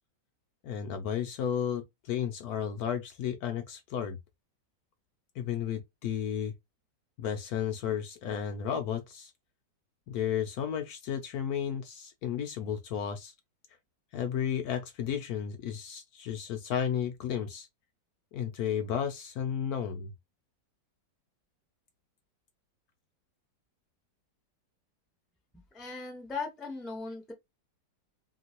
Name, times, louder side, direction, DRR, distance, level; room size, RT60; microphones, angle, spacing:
voice 1, 0.6-4.2 5.4-6.5 7.2-9.3 10.1-13.3 14.1-17.7 18.3-20.1, left 8 dB, 70° left, 0.9 m, -33 dB
voice 2, 25.7-27.3, left 4 dB, ahead, 0.4 m, -38 dB
3.0 x 2.8 x 2.8 m
omnidirectional pair, 1.9 m